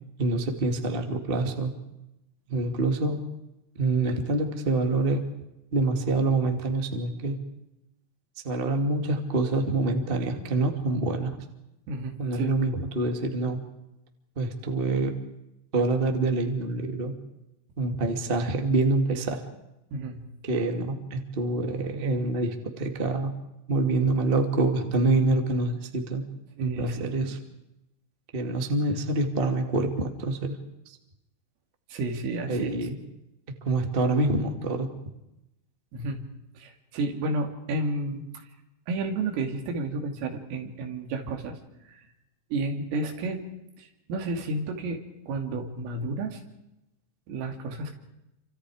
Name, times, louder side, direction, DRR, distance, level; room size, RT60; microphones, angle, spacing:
voice 1, 0.2-1.7 2.5-3.2 3.8-5.2 5.7-7.4 8.4-11.3 12.2-13.6 14.3-15.1 15.7-17.1 17.8-19.4 20.5-23.3 23.7-26.2 26.6-27.4 28.3-30.6 30.8-31.0 32.5-33.0 33.6-34.9, right 2 dB, 35° right, 4 dB, 0.8 m, -26 dB
voice 2, 11.9-12.5 19.9-20.3 26.6-27.3 31.9-32.8 35.9-36.3 36.6-38.4 38.9-41.6 41.9-42.0 42.5-43.4 43.8-46.4 47.3-47.9, right 2 dB, 85° right, 4 dB, 5.3 m, -31 dB
29.5 x 26.0 x 5.0 m, 0.91 s
omnidirectional pair, 5.7 m